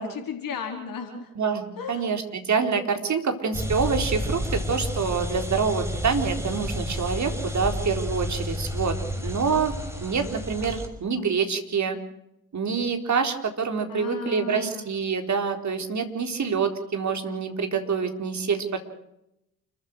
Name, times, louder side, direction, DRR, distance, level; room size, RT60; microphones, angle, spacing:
voice 1, 0.0-1.3 1.8-2.1 13.9-14.8, left 5 dB, 55° left, 4 dB, 4.3 m, -35 dB
voice 2, 1.4-9.0 9.2-9.7 10.0-12.0 12.5-18.8, right 5 dB, 45° right, 5 dB, 4.1 m, -26 dB
sound 1, 3.5-10.9, left 1 dB, 5° right, 6.0 m, -31 dB
29.0 x 15.0 x 6.5 m, 0.81 s
hypercardioid pair, 45°, 40 cm